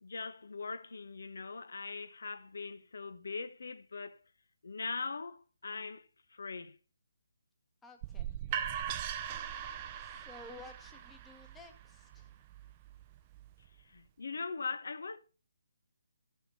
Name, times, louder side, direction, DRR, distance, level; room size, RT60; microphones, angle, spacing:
voice 1, 0.0-4.2 4.6-6.1 6.3-6.8 13.9-15.2, left 4 dB, 70° left, 1.0 m, -41 dB
voice 2, 7.8-8.3 10.0-12.3, left 2 dB, 10° left, 1.1 m, -53 dB
sound 1, 8.0-13.8, right 9 dB, 25° right, 0.5 m, -41 dB
13.0 x 5.8 x 4.2 m
figure-of-eight pair, 150°, 0 cm